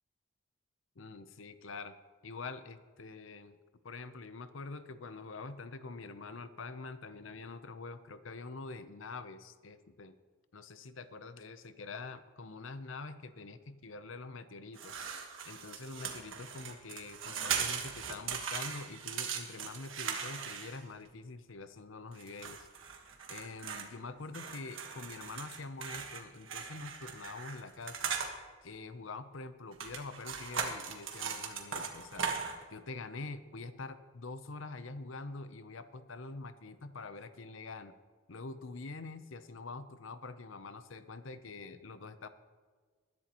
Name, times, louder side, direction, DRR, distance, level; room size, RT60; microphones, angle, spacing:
voice 1, 1.0-1.9 2.2-3.6 3.8-10.1 10.5-14.9 15.4-22.7 23.3-28.1 28.6-32.3 32.7-37.9 38.3-42.3, left 3 dB, 75° left, 12 dB, 0.7 m, -45 dB
sound 1, 14.8-21.1 22.2-23.9 24.3-28.3 29.7-32.6, right 6 dB, 75° right, 1.5 m, -39 dB
20.5 x 11.0 x 3.0 m, 1.5 s
head